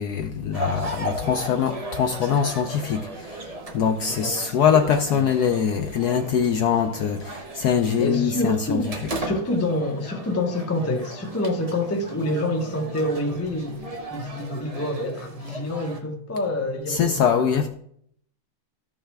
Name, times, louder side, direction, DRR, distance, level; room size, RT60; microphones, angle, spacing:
voice 1, 0.0-3.5 3.7-8.8 16.9-17.7, left 7 dB, 70° left, 0.9 m, -23 dB
sound 1, 0.5-16.0, right 2 dB, 60° right, 0.3 m, -36 dB
voice 2, 4.2-4.6 5.1-5.2 8.0-13.8 14.1-17.7, left 1 dB, 20° left, 0.4 m, -27 dB
13.5 x 5.5 x 3.4 m
omnidirectional pair, 2.2 m